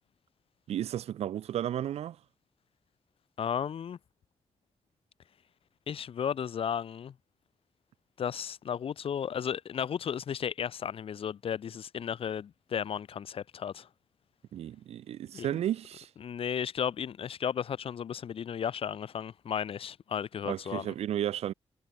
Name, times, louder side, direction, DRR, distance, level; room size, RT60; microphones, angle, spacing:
voice 1, 0.7-2.2 14.5-16.1 20.5-21.5, right 11 dB, 90° right, 1.0 m, -33 dB
voice 2, 3.4-4.0 5.9-7.1 8.2-13.9 15.3-15.5 16.2-20.9, left 8 dB, 65° left, 0.9 m, -34 dB
cardioid pair, 80°, 10 cm